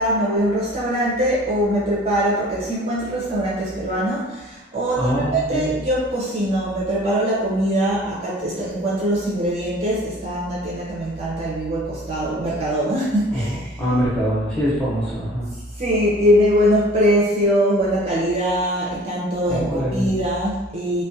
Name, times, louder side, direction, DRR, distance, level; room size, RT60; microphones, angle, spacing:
voice 1, 0.0-13.6 15.8-21.0, equal, 30° right, -7 dB, 0.5 m, -22 dB
voice 2, 4.9-5.7 13.3-15.5 19.5-20.1, equal, 5° left, -9 dB, 0.7 m, -23 dB
2.3 x 2.1 x 2.6 m, 1.1 s
head